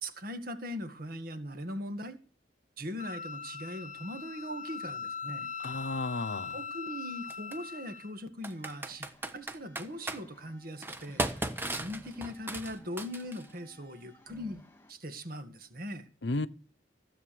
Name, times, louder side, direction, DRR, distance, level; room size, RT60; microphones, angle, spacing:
voice 1, 0.0-2.2 2.8-5.5 6.5-11.2 11.7-16.1, equal, 50° right, 2.0 m, -40 dB
Wind instrument woodwind instrument, 3.0-8.1, left 6 dB, 40° left, 0.9 m, -41 dB
voice 2, 5.6-6.6 16.2-16.5, left 2 dB, 70° left, 0.9 m, -33 dB
Computer keyboard, 5.6-5.7 7.3-7.6 8.4-10.2 10.8-13.5, right 1 dB, 10° right, 1.3 m, -36 dB
sound 1, 8.4-14.9, left 1 dB, 15° left, 2.5 m, -56 dB
16.0 x 8.3 x 7.0 m
head